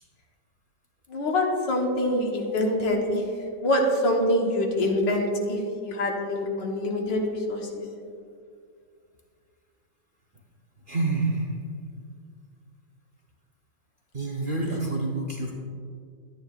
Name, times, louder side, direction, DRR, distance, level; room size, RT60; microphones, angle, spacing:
voice 1, 1.1-3.2 3.6-7.8, left 1 dB, 85° left, 1 dB, 1.8 m, -25 dB
voice 2, 10.9-11.5 14.1-15.5, right 2 dB, 45° right, -3 dB, 0.7 m, -27 dB
11.5 x 9.4 x 2.4 m, 2.2 s
omnidirectional pair, 1.9 m